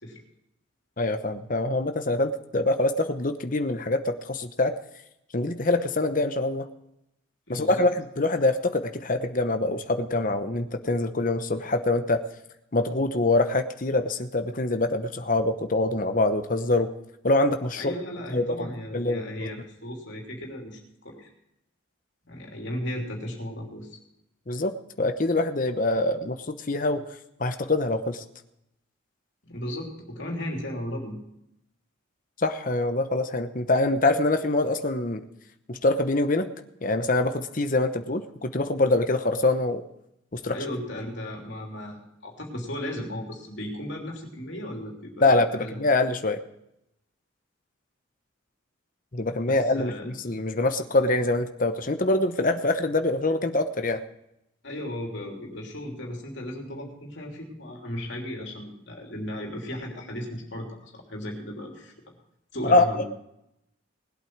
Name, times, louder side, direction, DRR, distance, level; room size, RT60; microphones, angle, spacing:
voice 1, 1.0-4.7 5.3-6.7 7.5-12.2 12.7-16.9 17.2-17.9 18.3-19.5 24.5-27.0 27.4-28.2 32.4-35.2 35.7-36.5 36.8-39.8 40.3-40.6 45.2-46.4 49.1-54.0 62.6-63.0, left 2 dB, 40° left, 8 dB, 0.9 m, -25 dB
voice 2, 7.5-7.8 17.8-21.3 22.3-24.0 29.4-31.2 40.5-45.8 49.4-50.4 54.6-62.2 62.5-63.1, left 1 dB, 60° left, 0 dB, 3.2 m, -36 dB
19.5 x 8.4 x 4.7 m, 0.82 s
head